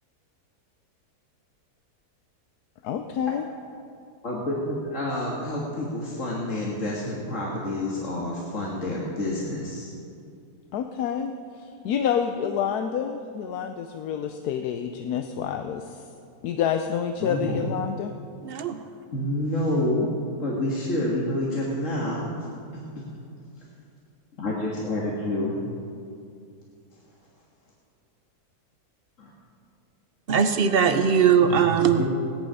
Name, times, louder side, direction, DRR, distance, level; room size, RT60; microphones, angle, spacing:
voice 1, 2.8-3.4 10.7-11.3 11.8-15.8 16.4-18.1, left 8 dB, 85° left, 6 dB, 1.2 m, -28 dB
voice 2, 4.2-9.9 17.2-17.6 19.1-20.1 20.4-22.3 23.0-23.1 24.4-25.7 29.2-29.3 31.4-31.7 32.0-32.1, left 1 dB, 55° left, -4 dB, 1.9 m, -28 dB
voice 3, 18.4-18.8 30.3-32.0, right 7 dB, 50° right, 8 dB, 0.8 m, -20 dB
17.0 x 10.5 x 5.5 m, 2.4 s
omnidirectional pair, 1.6 m